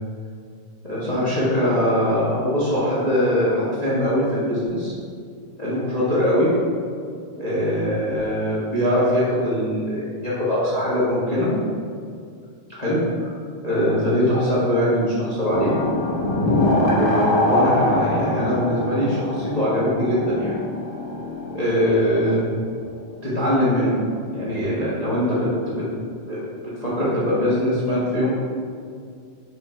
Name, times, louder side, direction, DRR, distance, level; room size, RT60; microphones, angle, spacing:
voice 1, 0.8-4.9 5.6-6.5 7.4-11.5 12.7-13.4 13.6-15.7 16.8-20.6 21.5-22.5 23.2-24.0 24.3-25.8 26.3-26.4 26.8-28.3, equal, 25° left, -8 dB, 0.8 m, -22 dB
sound 1, 15.5-22.5, left 1 dB, 60° left, 1.1 m, -23 dB
6.3 x 4.6 x 4.5 m, 2.2 s
omnidirectional pair, 3.3 m